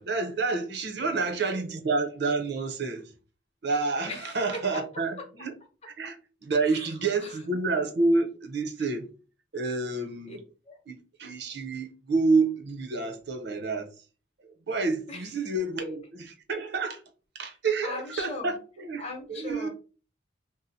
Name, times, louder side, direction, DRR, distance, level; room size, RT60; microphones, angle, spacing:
voice 1, 0.0-3.1 3.6-5.5 6.0-6.2 6.4-9.1 9.5-10.4 10.9-13.9 14.4-17.0 17.3-19.0 19.3-19.7, right 3 dB, 55° right, 0.6 m, -29 dB
voice 2, 1.0-1.6 4.1-4.4 4.7-4.8 5.4-5.5 6.6-6.9 7.2-7.4 10.3-10.4 10.7-10.8 15.1-15.2 17.8-18.5 19.0-19.7, left 3 dB, 30° left, 0.8 m, -39 dB
2.7 x 2.0 x 3.9 m
head